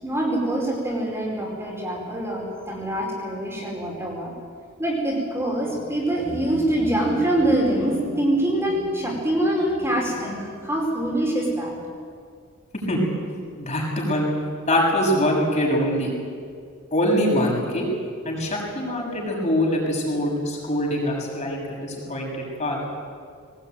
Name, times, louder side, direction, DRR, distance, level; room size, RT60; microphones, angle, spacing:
voice 1, 0.0-4.3 4.8-11.8, right 1 dB, 10° right, -3 dB, 5.0 m, -24 dB
voice 2, 13.6-14.3 14.7-16.1 16.9-17.9 18.2-22.9, equal, 35° left, -1 dB, 6.8 m, -23 dB
22.0 x 19.5 x 9.3 m, 2.2 s
head